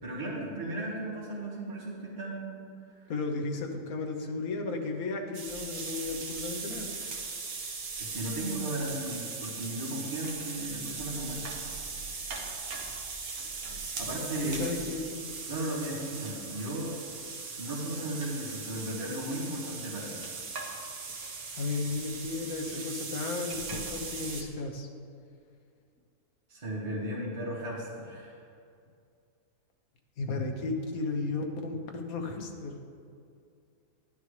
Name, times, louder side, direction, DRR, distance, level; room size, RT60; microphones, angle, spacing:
voice 1, 0.0-3.1 8.0-11.4 14.0-14.6 15.5-17.0 17.6-20.2 26.5-28.4, right 1 dB, 45° right, -8 dB, 2.0 m, -36 dB
voice 2, 3.1-6.9 14.4-15.1 21.6-24.9 30.2-32.8, left 3 dB, 70° left, 3 dB, 1.4 m, -34 dB
sound 1, 5.3-24.4, right 4 dB, 70° right, 1.5 m, -39 dB
11.5 x 10.5 x 3.3 m, 2.4 s
omnidirectional pair, 1.6 m